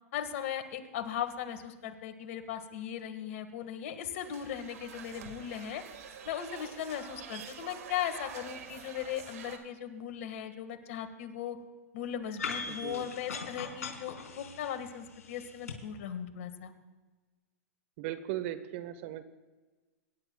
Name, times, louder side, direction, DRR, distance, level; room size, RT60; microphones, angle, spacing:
voice 1, 0.1-5.8 6.2-11.6 11.9-16.7, left 9 dB, 60° left, 8 dB, 1.7 m, -38 dB
sound 1, 4.2-9.6, right 7 dB, 70° right, 1.8 m, -47 dB
sound 2, 12.4-15.8, left 5 dB, 85° left, 4.2 m, -40 dB
voice 2, 12.7-13.1 18.0-19.2, right 13 dB, 55° right, 12 dB, 1.1 m, -38 dB
25.0 x 11.5 x 2.3 m, 1.3 s
hypercardioid pair, 115°, 8 cm